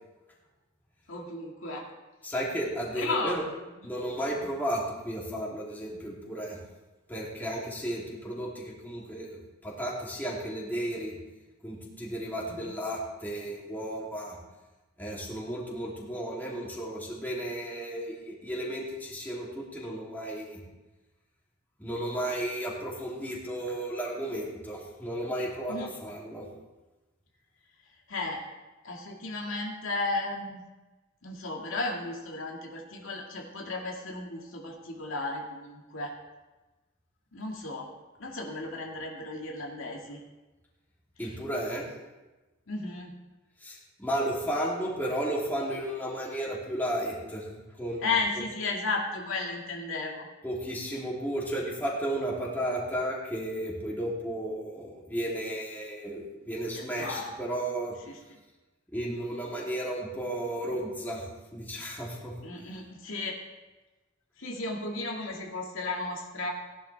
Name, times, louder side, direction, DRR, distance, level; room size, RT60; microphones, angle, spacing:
voice 1, 1.1-1.9 3.0-3.4 12.5-12.7 25.7-25.9 28.1-28.4 28.8-30.6 31.2-36.2 37.3-37.9 38.2-40.2 42.7-43.1 48.0-50.3 56.7-57.3 62.4-63.4 64.4-66.5, left 3 dB, 85° left, -1 dB, 2.1 m, -34 dB
voice 2, 2.2-3.4 3.8-6.6 7.1-11.1 11.6-14.4 15.0-20.6 21.8-26.5 41.2-41.9 43.6-47.5 47.8-48.1 50.4-58.0 58.9-62.3, right 1 dB, 10° left, -5 dB, 3.1 m, -33 dB
17.5 x 11.0 x 3.5 m, 1.1 s
head